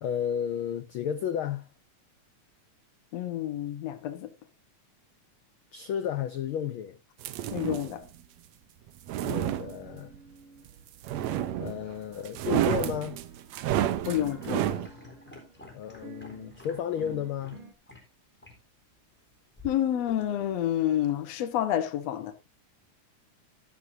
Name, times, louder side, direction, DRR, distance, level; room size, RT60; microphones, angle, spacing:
voice 1, 0.0-1.7 5.7-7.0 9.2-10.1 11.6-13.2 15.7-17.6, left 9 dB, 90° left, 1.1 m, -32 dB
voice 2, 3.1-4.3 7.5-8.1 14.1-14.7 19.6-22.3, left 11 dB, 65° left, 2.2 m, -29 dB
sound 1, 7.2-8.0 8.9-10.2 11.0-11.9 12.3-14.9, right 12 dB, 75° right, 2.0 m, -30 dB
sound 2, 9.8-10.8 11.1-17.7, right 4 dB, 50° right, 2.1 m, -51 dB
sound 3, 14.0-17.6 17.9-18.0 18.4-18.6 19.6-20.7, left 2 dB, 5° left, 3.5 m, -49 dB
13.0 x 11.0 x 2.7 m
omnidirectional pair, 3.4 m